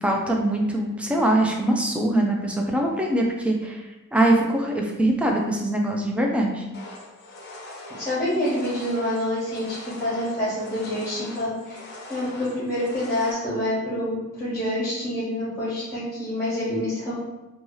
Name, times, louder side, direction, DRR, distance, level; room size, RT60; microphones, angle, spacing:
voice 1, 0.0-3.8 4.1-6.6, right 1 dB, 5° right, 0 dB, 0.3 m, -22 dB
sound 1, 6.7-13.3, left 2 dB, 50° left, 0.5 m, -42 dB
voice 2, 8.0-11.8 12.1-17.1, left 1 dB, 15° left, -9 dB, 0.9 m, -27 dB
2.7 x 2.3 x 3.0 m, 1.0 s
head